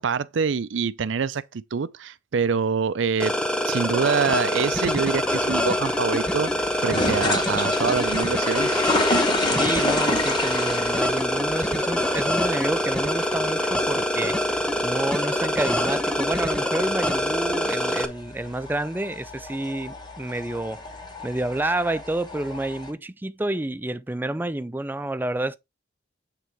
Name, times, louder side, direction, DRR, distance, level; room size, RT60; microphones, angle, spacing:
voice 1, 0.0-3.3 3.7-8.8, right 5 dB, 80° right, 0.5 m, -25 dB
sound 1, 3.2-18.0, left 1 dB, 5° left, 0.8 m, -25 dB
sound 2, 4.0-13.8, left 3 dB, 75° left, 4.7 m, -42 dB
sound 3, 4.7-22.9, left 2 dB, 25° left, 1.3 m, -31 dB
voice 2, 9.4-20.8 21.2-25.6, right 1 dB, 10° right, 0.4 m, -29 dB
8.3 x 3.7 x 4.5 m
head